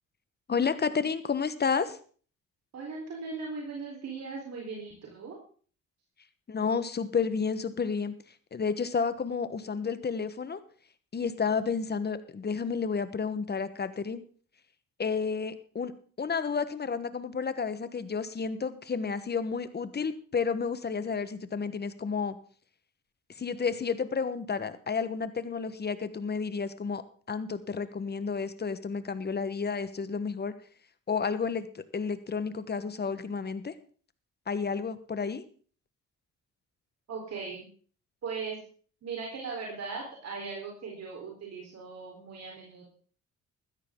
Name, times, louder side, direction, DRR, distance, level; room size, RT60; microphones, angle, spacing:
voice 1, 0.5-2.0 6.5-10.6 11.1-14.2 15.0-15.9 16.2-22.4 23.3-30.5 31.1-33.7 34.5-35.4, left 5 dB, 35° left, 13 dB, 1.3 m, -31 dB
voice 2, 2.7-5.4 37.1-37.7 38.2-38.6 39.0-42.8, right 4 dB, 60° right, -2 dB, 4.2 m, -38 dB
15.0 x 13.0 x 3.8 m, 0.43 s
cardioid pair, 90°, 30 cm